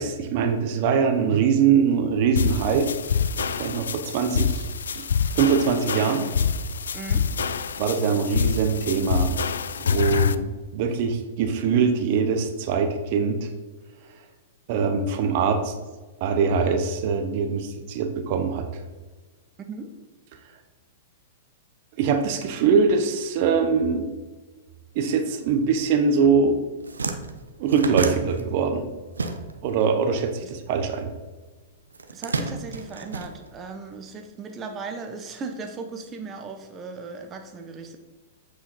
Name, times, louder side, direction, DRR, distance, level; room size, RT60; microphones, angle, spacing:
voice 1, 0.0-2.9 3.6-4.7 4.9-5.1 5.3-6.3 7.8-9.4 9.8-13.5 14.7-15.7 16.2-18.8 22.0-24.1 24.9-26.6 27.6-29.0 29.6-31.1, right 6 dB, 50° right, 7 dB, 0.9 m, -23 dB
sound 1, 2.4-10.4, left 6 dB, 80° left, 0.4 m, -26 dB
voice 2, 6.9-7.3 19.7-19.9 30.4-30.5 32.1-38.0, right 4 dB, 25° right, 5 dB, 0.9 m, -37 dB
sound 2, 26.3-26.4 26.7-29.8 30.1-31.3 31.9-33.9, right 3 dB, 90° right, 0.8 m, -30 dB
8.5 x 5.0 x 4.2 m, 1.3 s
hypercardioid pair, 110°, 0 cm